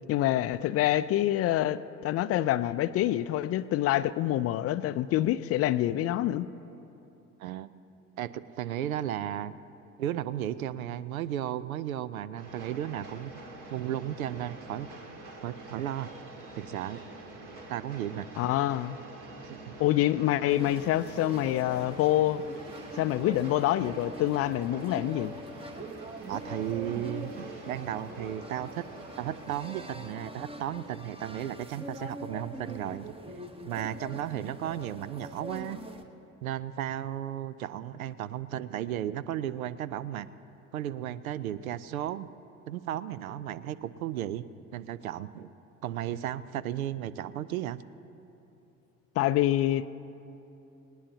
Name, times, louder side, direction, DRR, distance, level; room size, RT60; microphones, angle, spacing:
voice 1, 0.1-6.5 18.4-19.0 19.8-22.4 23.0-25.3 49.2-49.9, left 14 dB, 35° left, 15 dB, 0.4 m, -26 dB
voice 2, 8.2-9.5 10.0-13.4 13.7-14.9 15.4-16.1 16.6-17.0 17.7-18.3 19.4-19.7 26.3-28.8 29.2-33.1 33.6-35.8 36.4-40.3 40.7-42.3 42.7-44.4 44.7-45.5 45.8-47.8, right 11 dB, 80° right, 17 dB, 0.5 m, -34 dB
Train, 12.4-29.5, right 2 dB, 50° right, 2.1 m, -46 dB
sound 1, 20.5-36.0, right 1 dB, 15° right, 1.0 m, -43 dB
19.5 x 18.5 x 2.8 m, 2.9 s
figure-of-eight pair, 60°, 42 cm